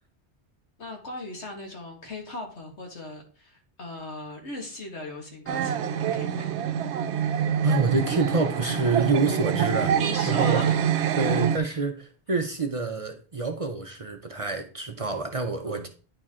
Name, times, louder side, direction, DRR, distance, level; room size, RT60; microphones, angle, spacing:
voice 1, 0.8-6.6 10.0-10.8 11.6-11.8 15.6-15.9, left 2 dB, 85° left, 2.1 m, -38 dB
sound 1, 5.5-11.6, right 8 dB, 80° right, 0.9 m, -26 dB
voice 2, 7.6-10.0 10.3-10.6 11.1-15.9, right 3 dB, 35° right, 0.7 m, -27 dB
9.8 x 4.6 x 3.7 m
omnidirectional pair, 1.1 m